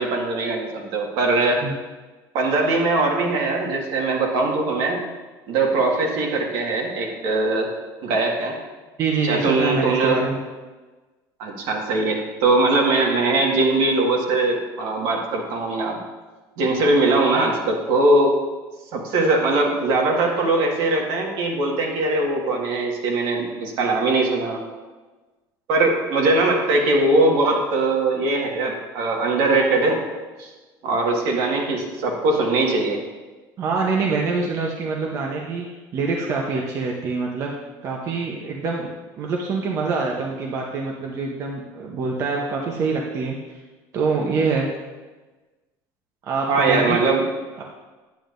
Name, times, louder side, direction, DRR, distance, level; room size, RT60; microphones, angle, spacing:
voice 1, 0.0-1.6 2.3-5.0 5.5-7.7 8.0-8.6 9.2-10.2 11.4-16.0 16.6-18.3 18.9-24.6 25.7-30.0 30.4-30.5 30.8-33.0 46.5-47.3, right 2 dB, 65° right, 0 dB, 1.7 m, -21 dB
voice 2, 9.0-10.4 33.6-35.6 35.9-37.5 37.8-43.6 43.9-44.7 46.2-47.0 47.6-47.7, right 4 dB, 40° right, -1 dB, 0.8 m, -25 dB
9.2 x 8.8 x 2.6 m, 1.2 s
cardioid pair, 155°, 9 cm